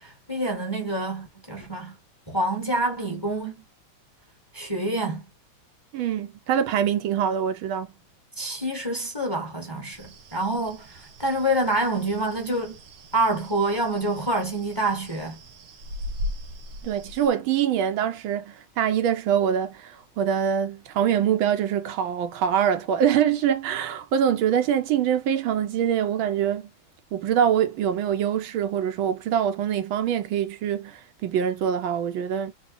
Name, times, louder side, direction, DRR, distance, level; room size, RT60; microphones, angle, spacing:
voice 1, 0.0-1.9 2.3-3.6 4.5-5.2 8.4-12.8 13.1-15.4, right 1 dB, 15° left, 1.2 m, -27 dB
voice 2, 5.9-7.9 16.8-26.6 27.1-32.5, right 9 dB, 80° right, 1.5 m, -24 dB
sound 1, 9.9-17.3, left 1 dB, 65° right, 1.4 m, -39 dB
4.0 x 2.3 x 3.8 m
omnidirectional pair, 2.2 m